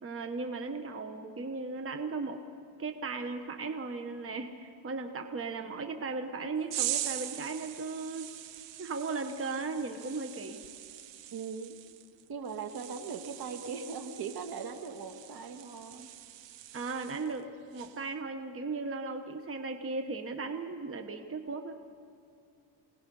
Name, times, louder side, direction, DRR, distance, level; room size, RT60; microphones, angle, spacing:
voice 1, 0.0-2.4 2.8-8.3 8.8-10.6 16.7-21.9, right 3 dB, 30° right, 7 dB, 1.3 m, -37 dB
sound 1, 6.7-17.4 17.7-18.1, right 12 dB, 75° right, 1.1 m, -42 dB
voice 2, 11.3-11.8 12.3-16.1, right 5 dB, 55° right, 7 dB, 1.9 m, -39 dB
27.0 x 19.0 x 5.5 m, 2.5 s
cardioid pair, 100°, 44 cm